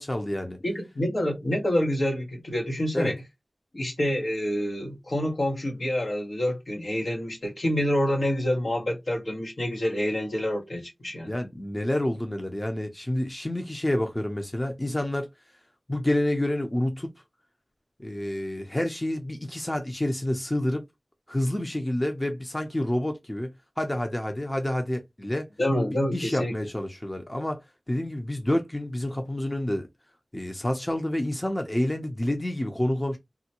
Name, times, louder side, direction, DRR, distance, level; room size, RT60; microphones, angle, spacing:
voice 1, 0.0-0.6 2.9-3.1 11.2-15.3 15.9-17.1 18.0-20.9 21.3-25.5 26.1-29.9 30.3-33.2, left 1 dB, 20° left, 0.7 m, -28 dB
voice 2, 0.6-3.2 3.7-11.3 25.6-26.5, equal, 65° left, 1.2 m, -27 dB
3.6 x 2.2 x 2.9 m
wide cardioid pair, 50°, 0 cm